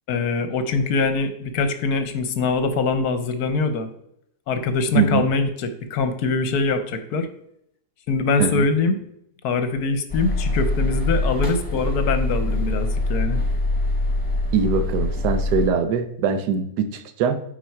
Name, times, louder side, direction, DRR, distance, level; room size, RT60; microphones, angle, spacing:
voice 1, 0.1-3.9 4.5-7.3 8.1-9.0 9.4-13.4, left 4 dB, 65° left, 9 dB, 1.2 m, -23 dB
voice 2, 4.9-5.3 8.4-8.7 14.5-17.4, right 6 dB, 70° right, 10 dB, 1.3 m, -22 dB
sound 1, 10.1-15.7, left 2 dB, 15° left, 1.7 m, -24 dB
9.2 x 4.3 x 4.5 m, 0.76 s
omnidirectional pair, 1.9 m